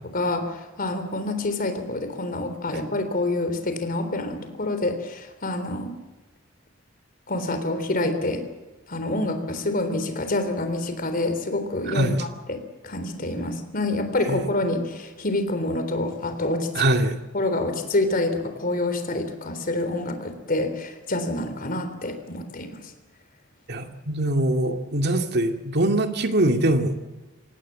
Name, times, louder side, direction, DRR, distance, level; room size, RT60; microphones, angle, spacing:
voice 1, 0.1-5.9 7.3-8.4 8.9-16.7 17.3-22.9, left 2 dB, 45° left, 8 dB, 3.7 m, -27 dB
voice 2, 11.9-12.2 14.3-14.4 16.7-17.2 23.7-27.1, right 1 dB, 55° right, 5 dB, 2.3 m, -23 dB
25.5 x 18.0 x 7.6 m, 1.2 s
head